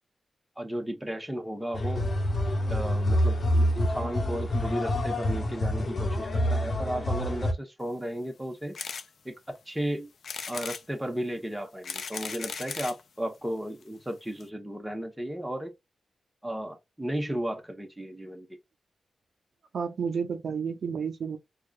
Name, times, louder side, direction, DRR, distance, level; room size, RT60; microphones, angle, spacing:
voice 1, 0.6-2.1 2.7-8.7 9.2-10.1 10.5-15.7 16.4-18.5, right 1 dB, 10° right, 1.1 m, -34 dB
sound 1, 1.7-7.5, equal, 50° left, 1.0 m, -27 dB
sound 2, 8.7-9.1 9.5-9.6 10.2-10.8 11.6-13.0 13.8-13.9 14.1-14.2 14.4-14.5, left 5 dB, 70° left, 0.5 m, -37 dB
voice 2, 19.7-21.4, right 6 dB, 70° right, 0.6 m, -31 dB
4.6 x 2.4 x 2.5 m
cardioid pair, 70°, 0 cm